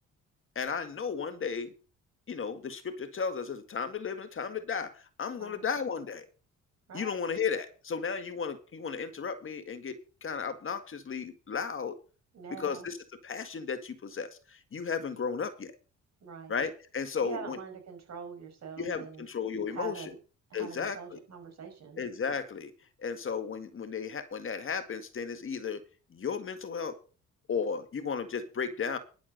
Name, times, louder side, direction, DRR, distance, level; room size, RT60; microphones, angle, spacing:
voice 1, 0.6-1.7 2.3-6.3 6.9-12.0 12.6-13.0 13.2-15.7 16.5-17.6 18.8-20.1 20.5-21.2 22.0-22.7 23.0-25.8 26.1-27.0 27.5-29.0, left 6 dB, 45° left, 9 dB, 1.9 m, -34 dB
voice 2, 6.9-7.2 12.3-12.9 16.2-16.6 17.2-19.3 19.7-20.2 20.5-22.0, right 6 dB, 60° right, 5 dB, 5.6 m, -44 dB
11.5 x 7.3 x 6.6 m, 0.37 s
cardioid pair, 90°, 30 cm